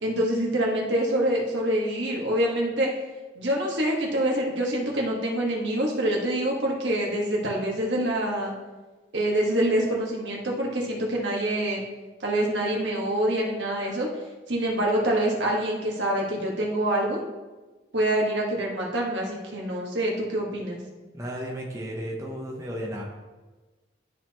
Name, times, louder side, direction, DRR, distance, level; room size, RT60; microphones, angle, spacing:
voice 1, 0.0-2.9 3.3-8.5 9.1-11.8 12.2-14.1 14.5-17.2 17.9-20.8, right 1 dB, 75° right, -2 dB, 1.6 m, -26 dB
voice 2, 21.1-23.0, equal, 15° right, -2 dB, 0.9 m, -34 dB
12.5 x 4.2 x 3.0 m, 1.2 s
head